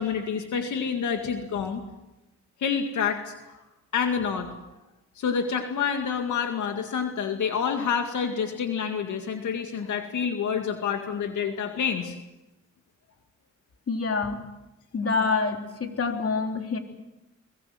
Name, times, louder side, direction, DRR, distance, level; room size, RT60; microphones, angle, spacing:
voice 1, 0.0-1.8 2.6-3.5 3.9-4.5 5.2-12.1, left 6 dB, 85° left, 5 dB, 2.1 m, -28 dB
voice 2, 13.9-14.4 14.9-16.8, left 4 dB, 50° left, 4 dB, 3.4 m, -26 dB
23.5 x 20.5 x 7.7 m, 0.96 s
cardioid pair, 85°, 29 cm